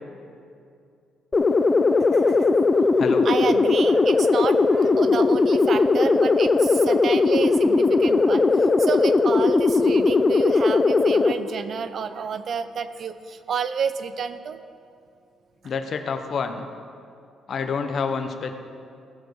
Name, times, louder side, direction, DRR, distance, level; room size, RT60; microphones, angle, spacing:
sound 1, 1.3-11.3, left 3 dB, 30° left, 0.4 m, -19 dB
voice 1, 2.1-2.9 3.2-14.6, right 6 dB, 55° right, 11 dB, 0.6 m, -30 dB
voice 2, 15.6-16.7 17.5-18.5, left 5 dB, 55° left, 7 dB, 0.9 m, -28 dB
16.0 x 6.8 x 4.8 m, 2.4 s
cardioid pair, 90°, 0 cm